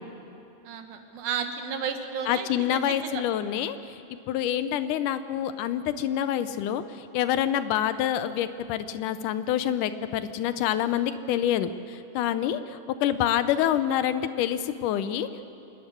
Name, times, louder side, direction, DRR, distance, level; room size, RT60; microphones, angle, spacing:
voice 1, 0.6-3.2, right 7 dB, 75° right, 6 dB, 2.7 m, -33 dB
voice 2, 2.3-3.8 4.3-6.8 7.1-11.7 12.2-12.6 13.0-15.3, left 11 dB, 85° left, 12 dB, 2.3 m, -26 dB
26.0 x 11.0 x 9.8 m, 2.7 s
omnidirectional pair, 3.6 m